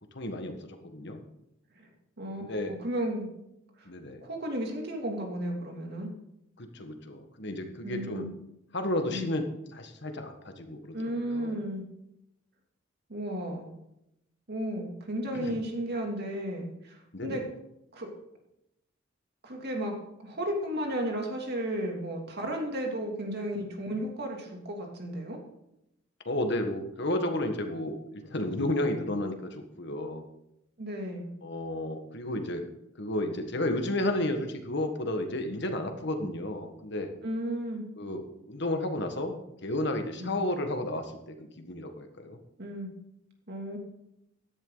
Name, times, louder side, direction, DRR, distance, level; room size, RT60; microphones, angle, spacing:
voice 1, 0.1-1.2 2.5-2.7 3.8-4.2 6.6-8.2 8.7-11.5 15.3-15.6 17.1-17.4 26.2-30.2 31.4-32.6 33.0-37.1 38.0-42.4, left 1 dB, 60° left, 6 dB, 1.6 m, -32 dB
voice 2, 2.7-3.3 3.8-3.9 4.2-6.1 7.8-8.3 9.1-9.3 10.9-11.8 13.1-13.7 14.5-17.4 17.9-18.1 19.4-19.9 20.2-25.4 30.8-31.3 36.2-36.3 37.2-37.9 40.2-40.3 42.6-42.9 43.5-43.8, right 1 dB, 55° right, 1 dB, 2.8 m, -34 dB
15.5 x 11.0 x 4.0 m, 0.83 s
head